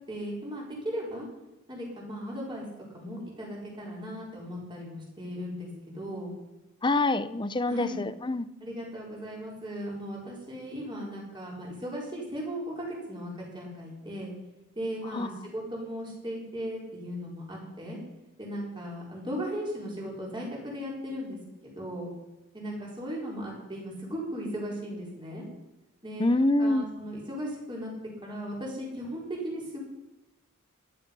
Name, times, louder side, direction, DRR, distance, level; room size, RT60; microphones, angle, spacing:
voice 1, 0.1-1.3 1.7-2.7 2.9-6.3 7.7-8.0 8.6-14.3 14.8-18.0 18.4-22.1 22.5-25.4 26.0-27.9 28.2-29.8, equal, 20° right, 4.6 m, -37 dB
voice 2, 6.8-8.5 15.1-15.3 26.2-26.9, left 2 dB, 20° left, 0.6 m, -25 dB
15.0 x 12.0 x 5.5 m
head